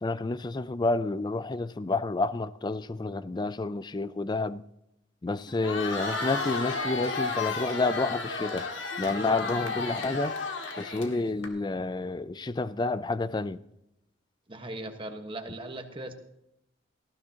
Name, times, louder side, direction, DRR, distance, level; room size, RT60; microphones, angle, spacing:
voice 1, 0.0-4.6 5.2-8.6 9.0-10.3 10.8-13.6, left 3 dB, 20° left, 0.4 m, -29 dB
Crowd, 5.5-11.5, left 3 dB, 70° left, 1.9 m, -33 dB
voice 2, 14.5-16.1, right 1 dB, 25° right, 1.3 m, -38 dB
18.5 x 14.5 x 2.8 m
head